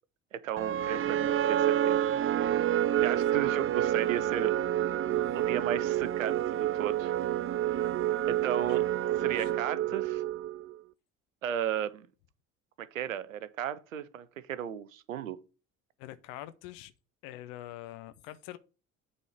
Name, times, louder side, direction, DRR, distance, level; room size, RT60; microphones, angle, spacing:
voice 1, 0.3-2.0 3.0-4.6 5.3-7.1 7.7-7.8 8.3-8.9 9.2-10.2 11.4-12.1 12.8-15.4, right 10 dB, 90° right, 0.6 m, -34 dB
sound 1, 0.6-10.8, right 12 dB, 35° right, 0.5 m, -28 dB
voice 2, 5.1-5.5 8.6-8.8 9.1-9.5 9.8-10.0 16.0-16.9 17.2-18.6, left 14 dB, 70° left, 0.9 m, -46 dB
8.8 x 4.2 x 5.0 m
hypercardioid pair, 45°, 38 cm